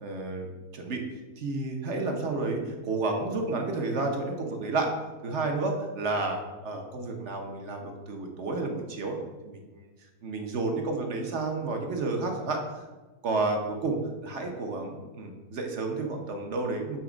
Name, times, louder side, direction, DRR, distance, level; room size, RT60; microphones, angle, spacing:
voice 1, 0.0-1.0 1.4-4.9 5.2-9.2 9.4-9.8 10.2-12.6 13.2-17.0, right 3 dB, 55° right, 3 dB, 1.0 m, -31 dB
7.2 x 3.3 x 4.9 m, 1.2 s
omnidirectional pair, 1.6 m